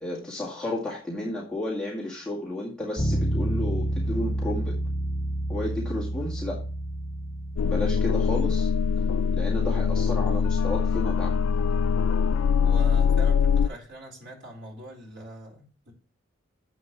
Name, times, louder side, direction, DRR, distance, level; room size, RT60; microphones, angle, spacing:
voice 1, 0.0-4.8 5.5-6.6 7.6-8.7 9.3-11.4, left 1 dB, 5° left, -5 dB, 2.1 m, -32 dB
Bass guitar, 3.0-12.7, right 1 dB, 25° left, 1.9 m, -31 dB
sound 1, 7.6-13.7, left 6 dB, 80° left, 0.3 m, -23 dB
voice 2, 12.6-15.9, equal, 55° right, 0 dB, 3.8 m, -42 dB
10.5 x 7.8 x 3.1 m, 0.37 s
head